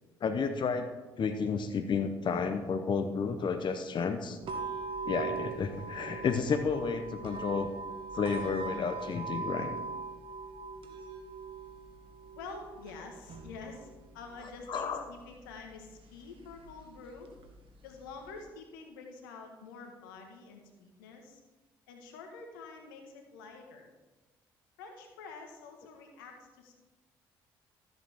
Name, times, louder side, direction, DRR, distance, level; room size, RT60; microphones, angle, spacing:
voice 1, 0.2-0.9 1.2-4.4 5.1-7.7 8.1-9.8 14.7-15.0, left 5 dB, 45° left, 8 dB, 0.9 m, -31 dB
sound 1, 4.4-18.4, right 4 dB, 55° right, 1.7 m, -42 dB
voice 2, 12.3-13.9 14.1-17.3 17.8-21.4 21.9-23.9 24.8-26.7, left 4 dB, 85° left, 3 dB, 1.5 m, -47 dB
13.5 x 7.9 x 3.6 m, 1.2 s
hypercardioid pair, 55°, 11 cm